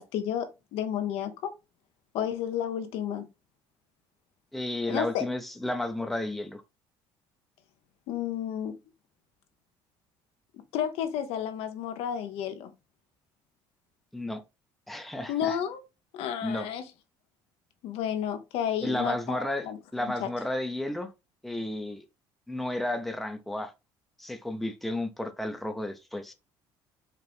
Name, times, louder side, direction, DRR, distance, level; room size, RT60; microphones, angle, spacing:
voice 1, 0.0-1.5 2.1-3.3 4.9-5.2 8.1-8.8 10.7-12.7 15.3-15.8 16.1-16.8 17.8-20.3, left 9 dB, 75° left, 0.7 m, -32 dB
voice 2, 4.5-6.6 14.1-14.4 14.9-15.6 16.4-16.7 18.8-19.7 19.9-21.1 21.4-22.0 22.5-23.7 24.2-26.3, left 1 dB, ahead, 0.6 m, -32 dB
4.4 x 2.5 x 3.3 m
supercardioid pair, 90°, 10 cm